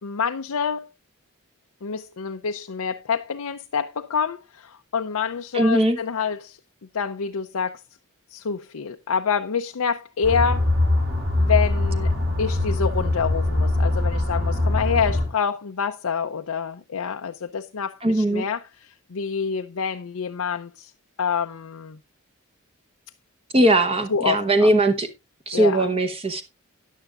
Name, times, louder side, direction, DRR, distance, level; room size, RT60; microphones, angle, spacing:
voice 1, 0.0-0.9 1.8-6.6 6.9-7.8 8.3-10.7 11.4-12.1 12.4-20.9 21.2-22.0 24.1-24.7 25.5-25.9, left 6 dB, 85° left, 0.6 m, -27 dB
voice 2, 5.5-6.0 18.0-18.4 23.5-25.1 25.5-26.4, right 1 dB, 25° right, 0.9 m, -19 dB
sound 1, 10.2-15.2, left 2 dB, 50° right, 5.1 m, -22 dB
14.0 x 10.0 x 2.4 m
head